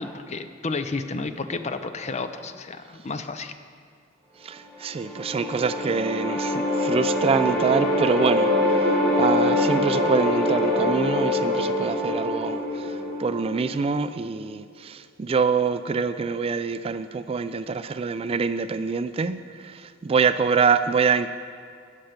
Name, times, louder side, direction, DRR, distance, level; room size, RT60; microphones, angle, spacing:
voice 1, 0.0-3.5, left 3 dB, 35° left, 10 dB, 0.6 m, -31 dB
voice 2, 4.4-8.5 8.8-8.9 9.2-21.3, right 5 dB, 30° right, 11 dB, 0.3 m, -25 dB
sound 1, 4.8-13.9, left 1 dB, 5° left, 3.2 m, -24 dB
15.5 x 6.5 x 5.9 m, 2.3 s
head